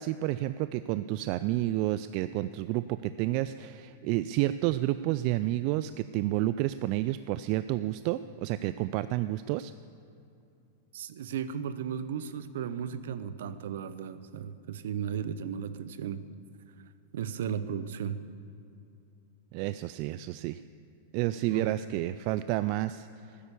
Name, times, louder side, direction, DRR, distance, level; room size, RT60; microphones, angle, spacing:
voice 1, 0.0-9.7 19.5-20.6 21.1-23.1, right 15 dB, 50° right, 13 dB, 0.3 m, -30 dB
voice 2, 10.9-16.2 17.1-18.2 21.5-21.7, right 8 dB, 70° right, 13 dB, 0.7 m, -35 dB
12.5 x 10.0 x 6.9 m, 2.6 s
hypercardioid pair, 110°, 0 cm